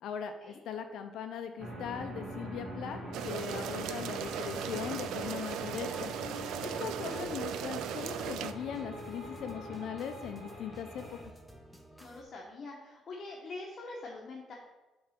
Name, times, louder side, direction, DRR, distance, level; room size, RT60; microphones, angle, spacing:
voice 1, 0.0-3.0 3.2-6.1 6.6-11.0, left 8 dB, 70° left, 7 dB, 0.5 m, -39 dB
sound 1, 1.6-11.2, equal, 35° right, 2.3 m, -43 dB
sound 2, 3.1-8.5, right 9 dB, 85° right, 0.3 m, -38 dB
sound 3, 4.2-12.2, right 1 dB, 5° right, 0.7 m, -53 dB
voice 2, 6.6-7.2 12.0-14.5, left 3 dB, 40° left, -3 dB, 1.0 m, -45 dB
6.7 x 3.9 x 5.7 m, 1.1 s
cardioid pair, 140°, 0 cm